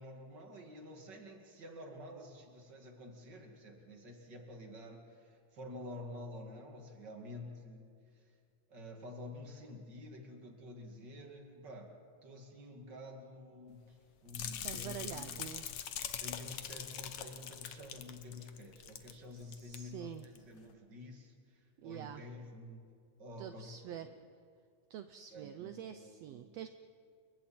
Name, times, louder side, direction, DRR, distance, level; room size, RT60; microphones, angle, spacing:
voice 1, 0.0-8.3 8.7-12.0 12.2-15.4 16.2-22.8 23.2-24.2 25.3-26.5, left 1 dB, 35° right, 2 dB, 2.7 m, -49 dB
sound 1, 14.3-19.2 19.4-19.8 20.2-20.4, left 9 dB, 60° left, 1.5 m, -43 dB
voice 2, 14.6-15.7 19.3-20.3 21.8-22.2 23.4-24.1 24.9-26.7, right 10 dB, 75° right, 9 dB, 1.6 m, -46 dB
29.5 x 23.0 x 4.4 m, 2.3 s
omnidirectional pair, 3.5 m